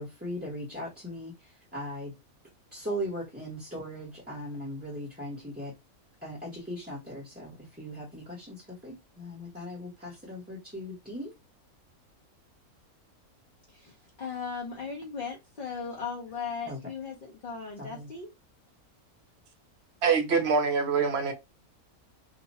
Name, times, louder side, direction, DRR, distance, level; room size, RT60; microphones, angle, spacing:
voice 1, 0.0-1.3 1.7-2.1 2.7-5.7 6.2-11.3 16.7-16.8 17.8-18.1, equal, 10° right, 0.8 m, -38 dB
voice 2, 13.7-18.3, left 5 dB, 45° left, 0.8 m, -37 dB
voice 3, 20.0-21.3, right 5 dB, 60° right, 0.8 m, -24 dB
2.9 x 2.2 x 4.0 m
omnidirectional pair, 1.5 m